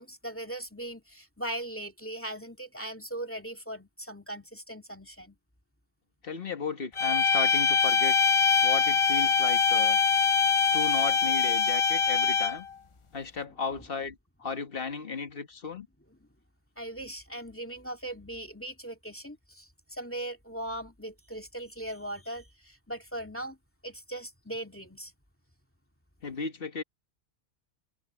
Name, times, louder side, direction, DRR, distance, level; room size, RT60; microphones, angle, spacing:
voice 1, 0.0-5.4 16.1-16.2 16.8-23.6 23.8-25.1, right 1 dB, 10° left, 2.4 m, -39 dB
voice 2, 6.2-8.2 8.6-10.0 10.7-12.7 13.1-15.9 26.2-26.8, left 5 dB, 55° left, 1.8 m, -35 dB
sound 1, 7.0-12.7, left 5 dB, 30° left, 0.7 m, -23 dB
omnidirectional pair, 1.1 m